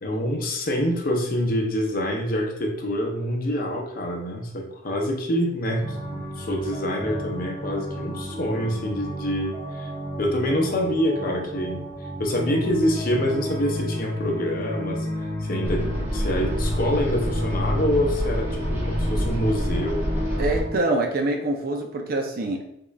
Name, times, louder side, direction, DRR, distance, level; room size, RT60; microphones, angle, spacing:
voice 1, 0.0-9.9 10.2-11.9 12.2-15.1 15.4-20.0, equal, 50° left, 2 dB, 0.6 m, -26 dB
sound 1, 5.8-20.8, left 1 dB, 15° left, 1.0 m, -31 dB
sound 2, 15.6-20.6, equal, 15° right, 0.7 m, -27 dB
voice 2, 20.4-22.7, right 2 dB, 50° right, 3 dB, 0.5 m, -25 dB
3.6 x 3.2 x 2.3 m, 0.78 s
head